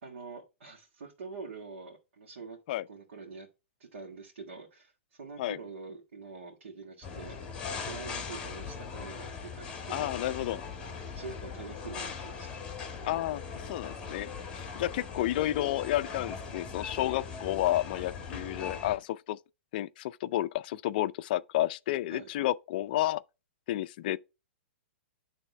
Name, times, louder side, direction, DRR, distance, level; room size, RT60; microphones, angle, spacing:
voice 1, 0.0-2.6 2.9-3.5 3.8-7.4 7.8-10.1 11.2-12.6 22.1-22.3, right 4 dB, 75° right, 2.1 m, -45 dB
sound 1, 7.0-19.0, left 5 dB, 15° left, 1.9 m, -40 dB
voice 2, 9.9-10.6 13.0-14.3 14.8-19.4 19.7-23.2 23.7-24.2, left 14 dB, 45° left, 0.4 m, -31 dB
10.5 x 3.5 x 4.3 m
hypercardioid pair, 155°, 7 cm